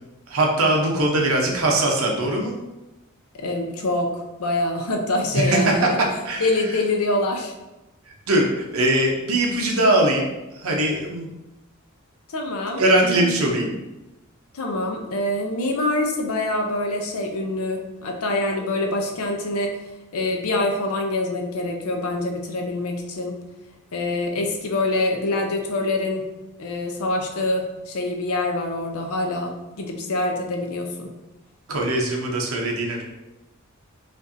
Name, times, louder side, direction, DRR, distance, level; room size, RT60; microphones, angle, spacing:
voice 1, 0.3-2.5 5.3-5.8 6.2-6.5 8.1-11.3 12.8-13.7 31.7-33.0, right 1 dB, 70° right, 0 dB, 0.8 m, -21 dB
voice 2, 3.3-6.0 6.4-7.5 12.3-13.7 14.5-19.8 20.1-23.4 23.9-26.3 26.6-31.1, left 2 dB, 85° left, 3 dB, 0.7 m, -25 dB
5.2 x 2.6 x 2.7 m, 1.0 s
head